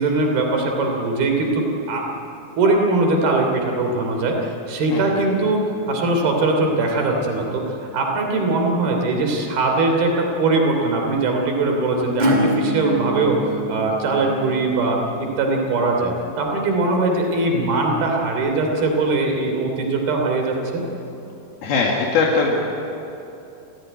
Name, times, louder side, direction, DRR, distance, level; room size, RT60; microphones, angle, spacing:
voice 1, 0.0-2.0 2.6-20.8, right 2 dB, 75° right, 2 dB, 5.0 m, -21 dB
Acoustic guitar / Strum, 12.2-17.7, right 1 dB, 10° right, 4.7 m, -27 dB
voice 2, 21.6-22.6, left 4 dB, 75° left, -2 dB, 3.9 m, -20 dB
30.0 x 15.5 x 9.2 m, 2.8 s
omnidirectional pair, 4.4 m